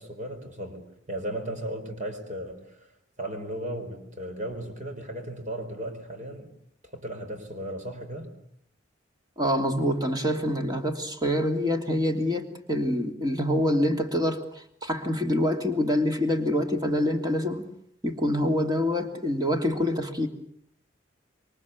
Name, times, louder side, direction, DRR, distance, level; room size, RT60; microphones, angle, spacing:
voice 1, 0.0-6.5 6.8-8.3, right 1 dB, 40° right, 5 dB, 4.7 m, -36 dB
voice 2, 9.4-17.7 18.0-20.3, left 1 dB, 20° right, 4 dB, 2.9 m, -26 dB
27.0 x 24.0 x 8.4 m, 0.67 s
head